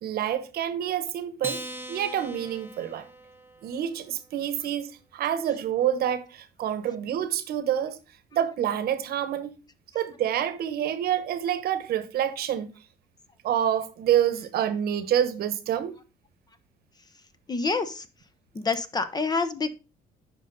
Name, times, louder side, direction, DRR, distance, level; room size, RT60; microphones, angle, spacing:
voice 1, 0.0-1.6 1.9-3.0 3.6-8.0 8.3-9.6 9.9-12.7 13.4-15.9, right 10 dB, 65° right, 1.0 m, -27 dB
Acoustic guitar, 1.4-4.1, right 1 dB, 15° right, 0.8 m, -40 dB
voice 2, 17.5-18.1 18.5-19.7, left 4 dB, 25° left, 0.7 m, -27 dB
7.8 x 5.2 x 4.0 m
cardioid pair, 110°, 17 cm